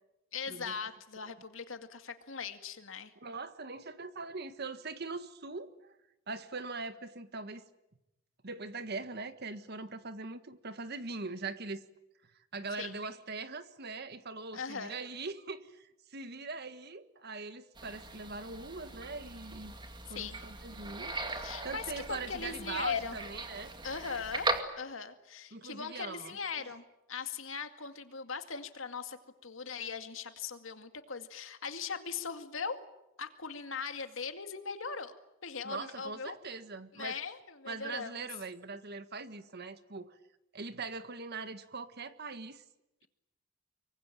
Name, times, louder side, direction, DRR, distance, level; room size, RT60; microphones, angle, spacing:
voice 1, 0.3-3.1 12.8-13.0 14.5-15.0 20.1-20.4 21.3-23.2 23.8-24.5 24.8-29.2 29.4-32.9 33.2-35.1 35.4-36.4 36.9-38.1, left 5 dB, 80° left, 8 dB, 2.2 m, -39 dB
voice 2, 3.2-5.7 6.3-7.6 8.4-11.8 12.5-19.7 20.1-21.1 21.6-23.7 25.5-26.4 35.6-37.2 37.7-40.2 40.5-42.6, right 3 dB, 55° right, 11 dB, 1.6 m, -41 dB
sound 1, 17.7-24.6, right 2 dB, 25° right, 2.4 m, -39 dB
24.5 x 24.0 x 9.2 m, 0.93 s
head